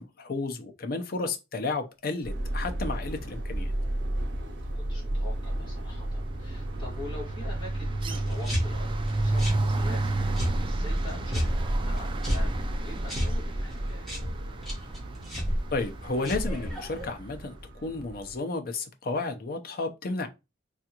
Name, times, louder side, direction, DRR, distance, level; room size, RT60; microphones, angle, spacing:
voice 1, 0.0-3.7 15.7-20.3, left 3 dB, 55° left, 0.6 m, -32 dB
Subway metro underground, 2.2-18.4, right 1 dB, 70° right, 0.8 m, -34 dB
sound 1, 3.4-3.7 4.0-17.1, right 2 dB, 25° right, 0.3 m, -33 dB
voice 2, 4.3-14.1, left 2 dB, 25° left, 1.9 m, -45 dB
sound 2, 8.2-17.1, equal, ahead, 1.3 m, -33 dB
3.4 x 2.4 x 2.9 m
head